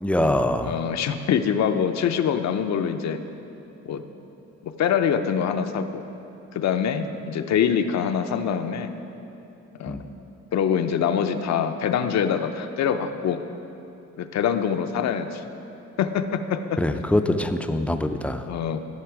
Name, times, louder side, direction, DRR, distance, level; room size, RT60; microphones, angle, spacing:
voice 1, 0.0-0.8 9.9-10.0 16.8-18.5, left 1 dB, 5° left, 7 dB, 0.4 m, -23 dB
voice 2, 0.6-3.2 3.9-4.0 4.6-6.1 6.5-8.9 9.8-10.0 10.5-13.4 14.2-15.4 16.0-16.8 18.5-18.8, left 8 dB, 65° left, 8 dB, 0.6 m, -24 dB
13.5 x 5.9 x 4.8 m, 2.9 s
cardioid pair, 90°, 30 cm